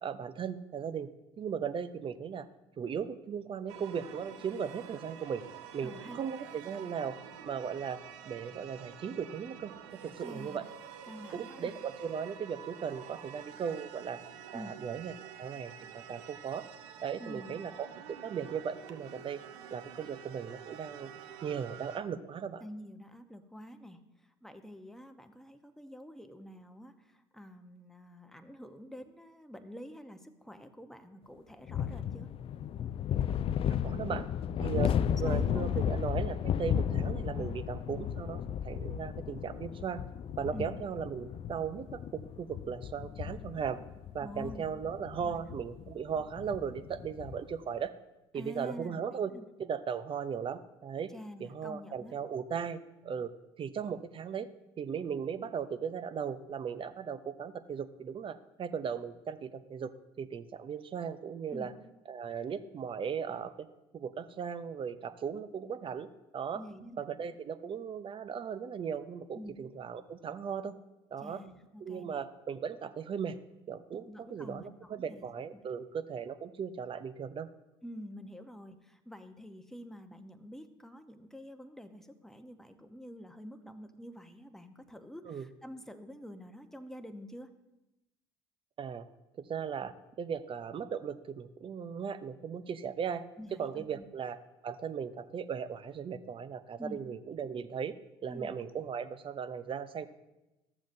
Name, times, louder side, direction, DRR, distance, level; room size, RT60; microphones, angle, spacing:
voice 1, 0.0-1.1 1.4-2.5 2.8-5.4 5.7-7.2 7.4-8.0 8.2-9.7 10.0-10.7 11.3-14.2 14.5-15.1 15.4-16.6 17.0-19.4 19.7-21.1 21.4-22.6 33.8-34.3 34.6-34.9 35.2-40.0 40.4-43.8 44.1-47.9 48.3-49.3 49.6-51.1 51.4-53.3 53.6-54.5 54.8-59.9 60.2-61.7 62.1-63.7 63.9-66.1 66.3-66.6 67.0-70.8 71.1-71.4 71.8-73.4 73.7-77.5 85.3-85.5 88.8-89.1 89.4-93.3 93.6-94.4 94.6-97.9 98.2-100.1, right 7 dB, 40° right, 12 dB, 0.7 m, -37 dB
sound 1, 3.7-22.0, right 9 dB, 80° right, 0.8 m, -48 dB
voice 2, 5.8-6.2 10.2-10.6 11.0-11.7 14.5-14.8 17.2-17.6 22.6-32.3 34.8-35.9 37.3-37.6 40.5-40.7 44.2-44.7 45.2-45.5 48.3-49.5 51.1-52.1 61.5-61.7 66.5-67.0 69.3-69.6 71.2-72.2 74.1-75.3 75.5-75.8 77.8-87.5 93.4-94.0 96.8-97.0 98.2-98.5, equal, 5° left, 8 dB, 0.9 m, -48 dB
sound 2, 31.7-47.5, left 9 dB, 40° left, 0.4 m, -34 dB
14.0 x 7.3 x 2.7 m, 0.99 s
hypercardioid pair, 65°, 14 cm